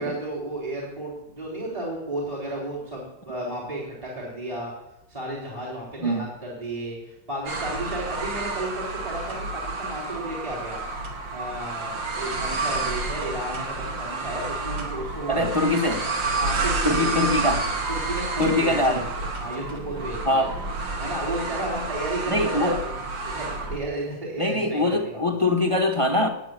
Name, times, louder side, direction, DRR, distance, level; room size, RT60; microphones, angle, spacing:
voice 1, 0.0-4.7 5.1-10.8 11.3-15.6 16.4-17.0 17.9-20.5 21.0-22.9 23.2-25.2, right 1 dB, 20° right, -3 dB, 3.8 m, -33 dB
sound 1, 7.5-23.8, right 3 dB, 85° right, 2.8 m, -30 dB
voice 2, 15.3-16.1 16.8-17.6 18.4-19.1 20.2-20.6 22.3-22.8 24.4-26.3, left 1 dB, 20° left, 4 dB, 1.1 m, -23 dB
17.0 x 8.6 x 9.4 m, 0.90 s
omnidirectional pair, 2.0 m